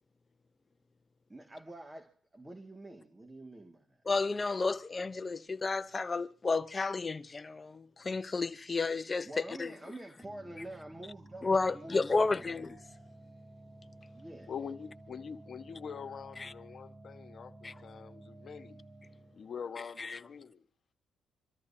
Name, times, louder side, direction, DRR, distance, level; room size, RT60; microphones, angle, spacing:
voice 1, 1.3-4.0 9.2-12.5 14.1-14.5, right 1 dB, 15° right, 2.2 m, -47 dB
voice 2, 4.1-9.3 9.6-9.7 11.4-12.8 16.4-16.5 17.6-17.7 20.0-20.2, left 3 dB, 30° left, 0.9 m, -32 dB
sound 1, 10.2-19.5, right 1 dB, 35° right, 2.8 m, -53 dB
voice 3, 14.5-18.8 19.3-20.6, left 6 dB, 50° left, 1.5 m, -44 dB
26.5 x 13.5 x 2.8 m
cardioid pair, 90°, 0 cm